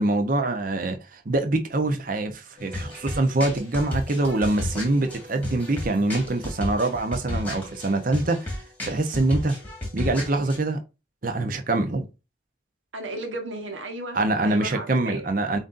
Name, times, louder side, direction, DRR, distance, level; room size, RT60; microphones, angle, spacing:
voice 1, 0.0-8.6 8.8-9.6 9.9-10.8 11.2-12.1 14.1-15.6, right 2 dB, 45° right, 0.7 m, -24 dB
sound 1, 2.6-10.6, left 1 dB, 10° left, 1.6 m, -33 dB
voice 2, 12.9-15.3, right 2 dB, 85° right, 1.1 m, -35 dB
7.2 x 2.7 x 2.5 m
head